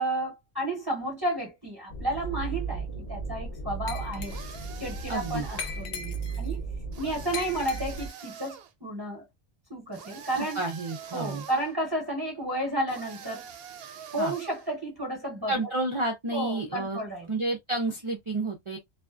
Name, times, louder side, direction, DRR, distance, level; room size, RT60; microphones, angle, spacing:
voice 1, 0.0-4.4 4.8-6.6 7.0-9.2 9.7-10.6 11.1-13.5 14.1-15.7 16.3-17.3, right 1 dB, 25° right, 0.9 m, -32 dB
sound 1, 1.9-8.1, right 4 dB, 40° left, 0.7 m, -36 dB
Glass, 3.9-4.7 5.6-6.5 7.3-8.2, left 6 dB, 80° left, 0.9 m, -39 dB
sound 2, 4.3-5.8 6.9-8.7 9.9-11.7 12.9-14.7, right 8 dB, 70° right, 0.8 m, -45 dB
voice 2, 5.1-5.5 10.4-11.4 14.2-14.3 15.5-17.0 17.3-18.8, right 2 dB, 40° right, 0.4 m, -30 dB
2.4 x 2.3 x 2.3 m
omnidirectional pair, 1.1 m